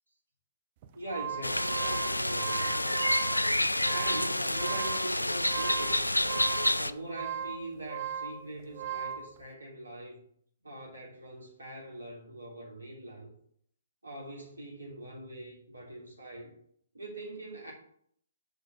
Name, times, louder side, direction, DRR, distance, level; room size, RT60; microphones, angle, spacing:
sound 1, 0.8-9.3, right 8 dB, 35° right, 0.7 m, -38 dB
voice 1, 0.9-3.2 3.9-6.2 6.7-10.2 10.6-13.3 14.0-16.5 16.9-17.7, right 1 dB, 75° right, -2 dB, 3.0 m, -42 dB
sound 2, 1.4-6.9, left 1 dB, 85° left, 0.3 m, -29 dB
7.0 x 4.4 x 5.6 m, 0.65 s
figure-of-eight pair, 125°, 0 cm